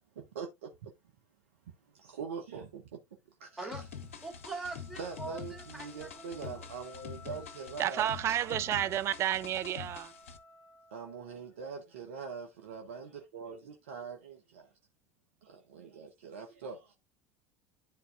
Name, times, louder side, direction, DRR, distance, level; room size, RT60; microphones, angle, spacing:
voice 1, 0.1-0.9 1.8-3.0 3.4-3.8 5.0-8.0 10.9-14.7 15.4-16.9, right 5 dB, 70° right, 1.1 m, -43 dB
Wind instrument woodwind instrument, 3.5-11.5, left 2 dB, 35° left, 2.1 m, -57 dB
sound 1, 3.7-10.4, left 6 dB, 70° left, 0.8 m, -46 dB
voice 2, 4.2-6.6, right 3 dB, ahead, 2.9 m, -43 dB
voice 3, 7.8-10.1, right 11 dB, 40° right, 0.6 m, -31 dB
12.0 x 4.0 x 2.5 m
figure-of-eight pair, 70°, 7 cm